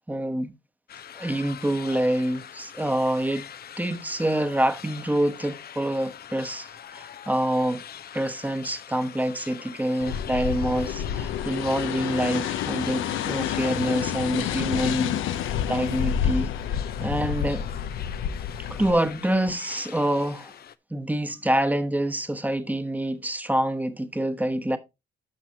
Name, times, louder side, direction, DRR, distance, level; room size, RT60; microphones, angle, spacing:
voice 1, 0.1-0.5 1.1-3.5 3.8-7.8 8.1-17.7 18.7-20.5 20.9-24.8, right 1 dB, 10° right, 1.1 m, -26 dB
sound 1, 0.9-20.7, left 9 dB, 50° left, 0.6 m, -43 dB
sound 2, 10.0-18.9, left 9 dB, 85° left, 0.8 m, -29 dB
12.0 x 6.1 x 2.9 m
cardioid pair, 90°, 20 cm